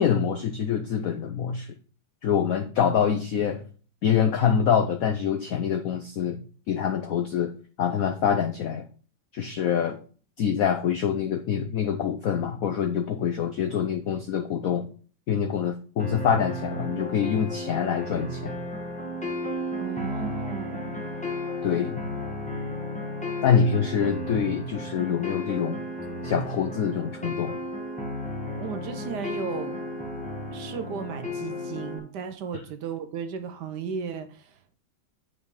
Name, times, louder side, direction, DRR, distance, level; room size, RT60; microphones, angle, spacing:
voice 1, 0.0-1.7 2.2-3.6 4.0-6.4 6.7-7.5 7.8-8.8 9.3-10.0 10.4-14.9 15.3-18.5 21.6-22.0 23.4-25.8 26.2-27.6, left 8 dB, 80° left, 0.7 m, -25 dB
sound 1, 16.0-32.0, left 1 dB, 5° left, 0.9 m, -33 dB
voice 2, 19.8-21.0 28.6-29.8 30.5-34.8, right 7 dB, 70° right, 1.1 m, -35 dB
8.3 x 5.2 x 3.6 m
omnidirectional pair, 2.2 m